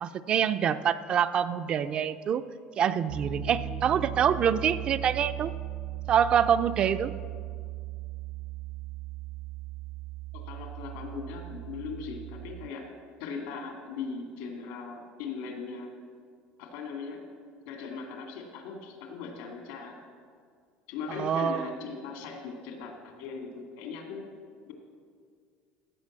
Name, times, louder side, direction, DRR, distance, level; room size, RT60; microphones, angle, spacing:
voice 1, 0.0-2.4 2.8-5.5 6.1-7.1 21.1-21.7, right 8 dB, 30° right, 12 dB, 0.3 m, -26 dB
Piano, 3.1-12.7, right 12 dB, 80° right, 1.3 m, -38 dB
voice 2, 3.4-3.8 10.3-12.9 13.2-15.9 16.6-17.2 17.7-20.0 20.9-24.3 24.7-24.8, left 5 dB, 80° left, 2 dB, 2.5 m, -39 dB
16.5 x 5.9 x 7.4 m, 2.1 s
cardioid pair, 175°, 3 cm